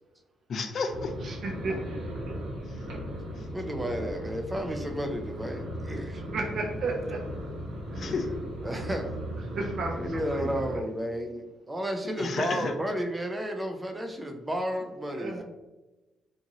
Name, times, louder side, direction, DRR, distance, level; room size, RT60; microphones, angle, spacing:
voice 1, 0.5-1.1 2.7-2.9 3.4-3.5 8.0-8.3 12.0-12.7, left 4 dB, 55° left, 6 dB, 0.3 m, -32 dB
sound 1, 0.9-10.8, equal, 90° right, 1.0 m, -37 dB
voice 2, 1.6-2.0 6.3-7.2 8.0-8.1 9.6-10.5 15.1-15.4, right 3 dB, 60° right, 0 dB, 0.7 m, -33 dB
voice 3, 3.3-6.2 7.9-8.2 8.6-9.1 9.9-15.4, equal, 15° right, 4 dB, 0.4 m, -32 dB
2.5 x 2.5 x 2.9 m, 1.1 s
cardioid pair, 90°, 0 cm